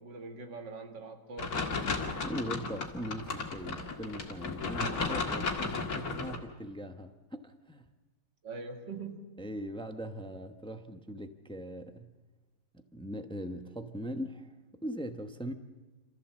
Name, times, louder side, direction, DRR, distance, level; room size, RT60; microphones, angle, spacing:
voice 1, 0.0-1.6 8.4-9.3, right 4 dB, 70° right, 4 dB, 2.5 m, -42 dB
sound 1, 1.4-6.4, left 4 dB, 55° left, 2.4 m, -34 dB
voice 2, 2.2-7.9 9.4-12.1 12.7-14.5 14.8-15.5, equal, 5° left, 7 dB, 0.3 m, -40 dB
27.5 x 14.5 x 7.5 m, 1.3 s
omnidirectional pair, 2.0 m